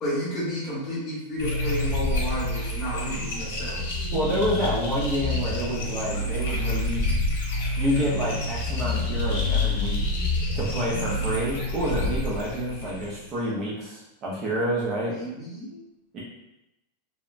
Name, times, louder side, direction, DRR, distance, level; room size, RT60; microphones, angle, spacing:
voice 1, 0.0-3.8 15.2-15.8, equal, 20° left, -7 dB, 0.8 m, -31 dB
sound 1, 1.4-13.3, left 2 dB, 70° left, 0.8 m, -28 dB
voice 2, 4.1-7.2 7.8-10.0 10.5-15.1 16.1-16.2, equal, 25° right, -5 dB, 0.4 m, -28 dB
3.0 x 2.0 x 2.4 m, 0.92 s
supercardioid pair, 175°, 0 cm